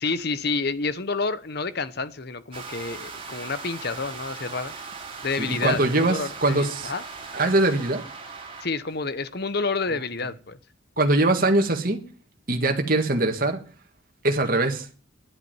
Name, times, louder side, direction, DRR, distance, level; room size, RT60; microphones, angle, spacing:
voice 1, 0.0-4.7 5.2-7.0 8.6-10.6, left 4 dB, 50° left, 1.0 m, -29 dB
sound 1, 2.5-8.7, right 4 dB, 25° right, 3.0 m, -39 dB
voice 2, 5.4-6.9 7.3-8.0 11.0-12.0 12.5-13.6 14.2-14.9, right 2 dB, 45° right, 1.8 m, -22 dB
11.0 x 8.4 x 9.2 m
head